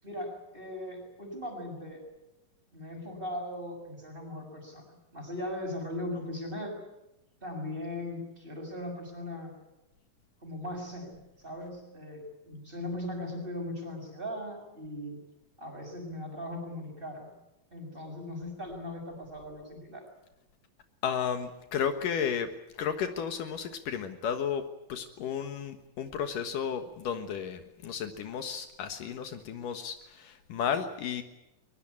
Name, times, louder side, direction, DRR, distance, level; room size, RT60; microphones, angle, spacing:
voice 1, 0.0-2.0 2.7-6.8 7.4-9.5 10.4-15.2 15.6-17.4 17.7-20.0, left 1 dB, 15° right, 3 dB, 6.8 m, -39 dB
voice 2, 21.0-22.5 22.8-24.6 24.9-31.2, left 7 dB, 70° left, 7 dB, 2.9 m, -33 dB
23.0 x 21.5 x 8.6 m, 0.95 s
omnidirectional pair, 4.0 m